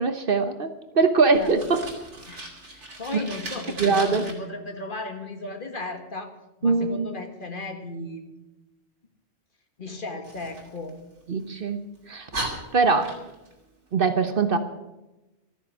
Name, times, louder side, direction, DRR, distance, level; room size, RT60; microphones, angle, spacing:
voice 1, 0.0-1.9 3.1-3.2 3.8-4.2 6.6-7.0 11.3-11.8 12.1-12.3 12.7-13.1 13.9-14.6, right 4 dB, 50° right, 9 dB, 1.2 m, -22 dB
Fire, 1.3-4.3 10.2-11.5 11.9-12.0 12.3-13.5, right 2 dB, 75° right, 3.1 m, -37 dB
voice 2, 2.3-6.3 6.6-8.3 9.8-11.0 12.9-13.1, left 2 dB, 45° left, 6 dB, 1.7 m, -36 dB
13.5 x 9.9 x 8.4 m, 0.99 s
omnidirectional pair, 1.2 m